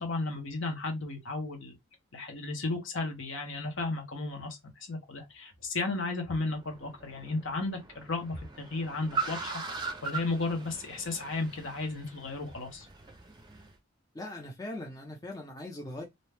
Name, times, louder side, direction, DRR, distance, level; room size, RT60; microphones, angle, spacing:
voice 1, 0.0-1.8 2.1-4.6 4.9-12.9, left 3 dB, 60° left, 0.9 m, -34 dB
Car, 6.3-13.7, right 4 dB, 20° right, 0.5 m, -40 dB
voice 2, 14.1-16.0, left 1 dB, 15° left, 0.7 m, -40 dB
2.6 x 2.2 x 3.3 m
head